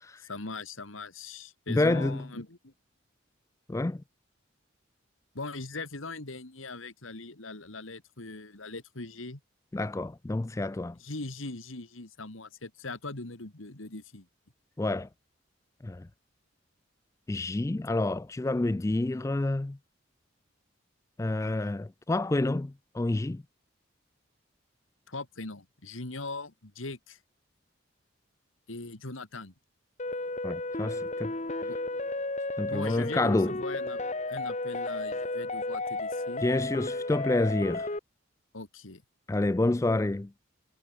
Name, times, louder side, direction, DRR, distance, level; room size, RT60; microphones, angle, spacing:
voice 1, 0.2-2.7 5.3-9.4 11.0-14.3 25.1-27.2 28.7-29.5 31.6-31.8 32.6-34.0 34.3-36.5 38.5-39.0, left 3 dB, 85° left, 2.4 m, -40 dB
voice 2, 1.7-2.3 3.7-4.0 9.7-11.0 14.8-15.1 15.8-16.1 17.3-19.8 21.2-23.4 30.4-31.3 32.6-33.6 36.4-37.9 39.3-40.3, left 2 dB, 15° left, 0.3 m, -28 dB
sound 1, 30.0-38.0, left 2 dB, 35° left, 1.6 m, -33 dB
head